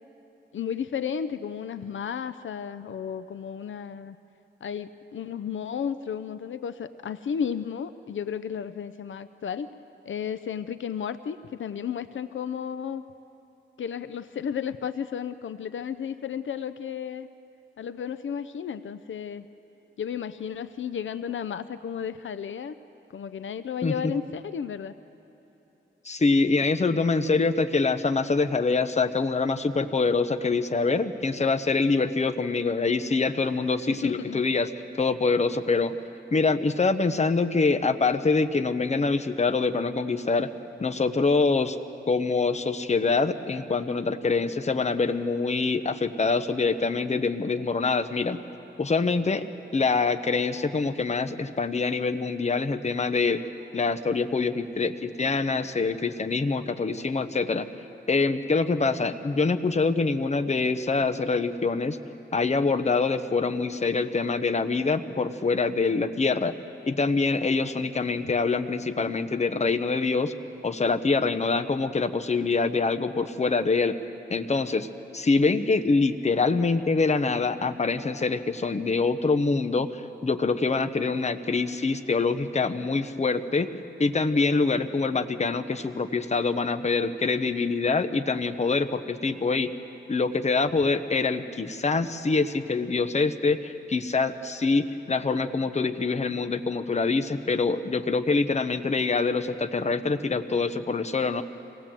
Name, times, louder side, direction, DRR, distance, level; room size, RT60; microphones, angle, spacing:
voice 1, 0.5-4.2 4.6-9.7 10.1-13.0 13.8-17.3 17.8-19.5 20.0-22.7 23.1-24.9 33.9-34.4 68.2-68.3, left 7 dB, 80° left, 13 dB, 0.5 m, -33 dB
voice 2, 23.8-24.1 26.0-34.7 35.0-35.9 36.3-40.5 40.8-41.8 42.1-48.4 48.8-53.4 53.7-57.7 58.1-62.0 62.3-66.6 66.9-70.3 70.6-74.0 74.3-74.9 75.1-83.7 84.0-89.7 90.1-101.4, left 4 dB, 35° left, 9 dB, 0.8 m, -25 dB
25.0 x 18.5 x 7.5 m, 3.0 s
wide cardioid pair, 90°, 20 cm